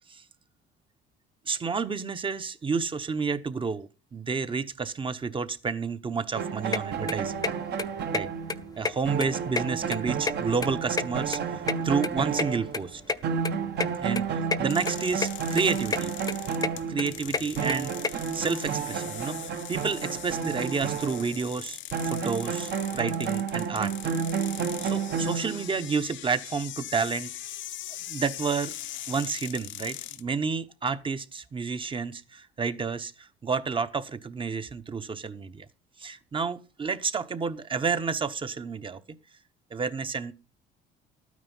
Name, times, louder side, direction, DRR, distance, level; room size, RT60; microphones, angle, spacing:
voice 1, 1.5-7.4 8.1-8.3 8.8-13.0 14.0-16.1 16.9-23.9 24.8-27.3 28.1-28.7 29.1-35.7 36.0-39.0 39.7-40.3, right 5 dB, 25° right, 1.0 m, -30 dB
sound 1, 6.3-13.0 13.2-21.5 21.9-25.9, right 6 dB, 55° right, 1.4 m, -31 dB
sound 2, 6.7-6.8 7.1-7.5 7.8-7.9 8.1-8.2 8.5-9.3 9.5-10.7 11.0-12.5 12.7-12.8 13.1-13.2 13.4-13.5 13.8-13.9 14.2-14.6 14.9-15.3 15.6-16.0 16.3-18.1, left 4 dB, 20° left, 0.7 m, -29 dB
sound 3, 14.7-30.2, left 13 dB, 65° left, 0.8 m, -41 dB
12.5 x 9.5 x 5.5 m
cardioid pair, 115°, 21 cm